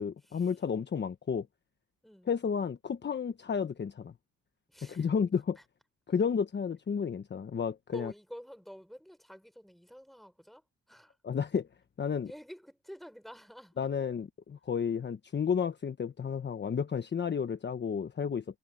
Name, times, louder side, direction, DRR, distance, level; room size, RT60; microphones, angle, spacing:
voice 1, 0.0-1.5 2.3-4.1 4.8-5.6 6.1-8.1 11.2-11.7 12.0-12.3 13.8-18.4, left 6 dB, 35° left, 1.2 m, -32 dB
voice 2, 4.7-5.1 5.6-5.7 7.9-10.6 10.9-11.1 12.3-13.8, equal, ahead, 4.5 m, -49 dB
cardioid pair, 90°, 30 cm